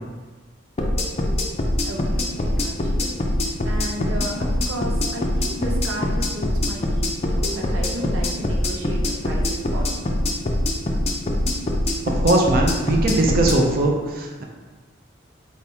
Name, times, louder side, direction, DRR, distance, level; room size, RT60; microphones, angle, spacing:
sound 1, 0.8-13.6, left 1 dB, 30° left, 0.4 m, -23 dB
voice 1, 1.8-3.2 3.6-10.2, right 1 dB, 85° right, -2 dB, 0.8 m, -34 dB
voice 2, 12.2-14.4, right 2 dB, 45° right, 1 dB, 0.5 m, -20 dB
4.1 x 3.4 x 2.8 m, 1.3 s
head